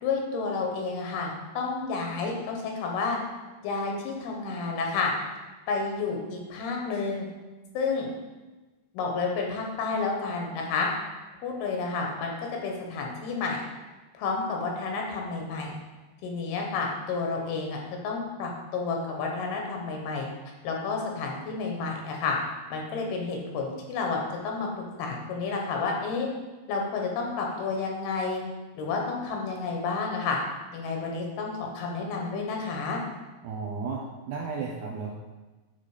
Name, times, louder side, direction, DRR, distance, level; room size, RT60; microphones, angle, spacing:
voice 1, 0.0-3.2 3.6-5.1 5.7-7.3 7.7-8.1 8.9-10.9 11.4-12.3 12.6-13.6 14.2-15.7 16.2-17.8 18.0-20.3 20.6-22.4 22.7-26.3 26.7-28.4 28.7-30.4 30.7-33.0, left 4 dB, 85° left, 0 dB, 3.1 m, -30 dB
voice 2, 33.4-34.0 34.3-35.2, right 5 dB, 75° right, -3 dB, 1.9 m, -33 dB
9.0 x 3.9 x 4.9 m, 1.2 s
omnidirectional pair, 4.4 m